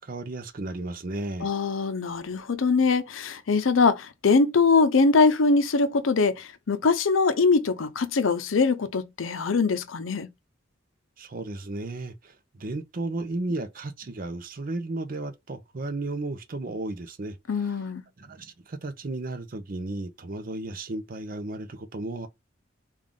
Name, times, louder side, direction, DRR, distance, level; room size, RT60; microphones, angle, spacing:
voice 1, 0.0-1.5 11.2-17.4 18.2-22.3, right 2 dB, 45° right, 0.6 m, -34 dB
voice 2, 1.4-10.3 17.5-18.0, left 4 dB, 85° left, 0.6 m, -22 dB
3.6 x 2.4 x 3.6 m
head